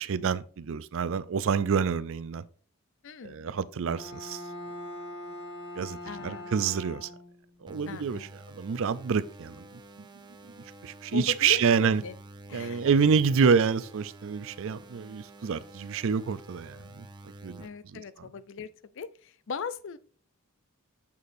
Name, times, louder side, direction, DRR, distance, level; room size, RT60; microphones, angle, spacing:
voice 1, 0.0-2.4 3.2-4.4 5.8-7.1 7.6-9.7 10.0-10.1 10.8-12.0 12.5-17.1 17.4-17.6 17.9-18.0, right 6 dB, 60° right, 0.4 m, -27 dB
voice 2, 3.0-3.5 6.0-6.5 7.9-8.4 11.1-12.1 12.5-12.9 17.6-20.0, left 6 dB, 55° left, 0.5 m, -39 dB
Bowed string instrument, 3.9-7.6, left 1 dB, 80° left, 2.7 m, -42 dB
sound 1, 7.7-17.7, right 2 dB, 20° right, 0.7 m, -49 dB
7.1 x 6.4 x 2.6 m
head